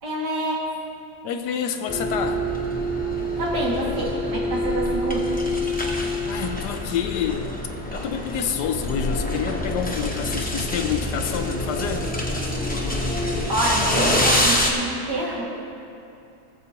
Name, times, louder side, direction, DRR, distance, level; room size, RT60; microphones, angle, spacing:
voice 1, 0.0-0.6 3.4-5.2 13.5-15.4, right 1 dB, 55° right, -5 dB, 2.5 m, -27 dB
voice 2, 1.2-2.5 6.3-7.6 7.9-12.1, left 8 dB, 70° left, 6 dB, 1.0 m, -28 dB
sound 1, 1.9-14.7, left 1 dB, 10° left, 0.4 m, -25 dB
18.5 x 7.6 x 2.8 m, 2.7 s
omnidirectional pair, 2.2 m